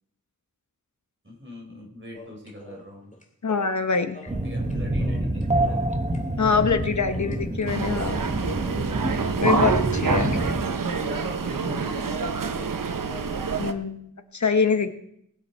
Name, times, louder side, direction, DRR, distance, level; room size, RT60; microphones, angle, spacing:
voice 1, 1.2-3.1 4.4-6.0 10.0-12.2, equal, 40° right, -2 dB, 4.5 m, -40 dB
sound 1, 2.1-6.2 6.5-7.7 8.0-9.3 9.5-11.9 12.2-12.3 12.5-13.7, left 1 dB, 25° left, 2.3 m, -45 dB
voice 2, 3.4-4.2 6.4-8.2 9.4-10.3 13.6-14.0 14.3-15.0, left 5 dB, 60° left, 9 dB, 1.2 m, -24 dB
sound 2, 4.3-10.6, right 1 dB, 20° right, 1.3 m, -27 dB
sound 3, 7.7-13.7, right 5 dB, 85° right, 0.9 m, -27 dB
20.0 x 7.3 x 4.5 m, 0.73 s
wide cardioid pair, 65°, 32 cm